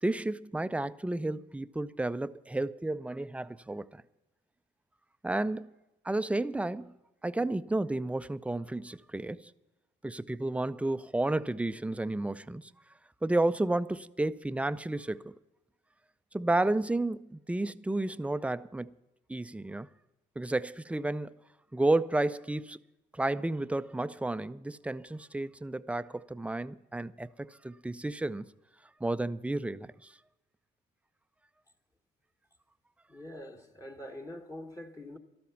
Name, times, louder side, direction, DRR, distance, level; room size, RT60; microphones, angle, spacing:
voice 1, 0.0-4.0 5.2-5.7 6.0-6.9 7.2-9.5 10.0-12.7 13.2-15.3 16.3-18.9 19.3-19.9 20.4-21.3 21.7-22.8 23.1-28.5 29.0-30.1, right 2 dB, 5° right, 0.4 m, -32 dB
voice 2, 33.1-35.2, left 1 dB, 15° left, 1.1 m, -44 dB
13.0 x 13.0 x 5.7 m
cardioid pair, 90°, 20 cm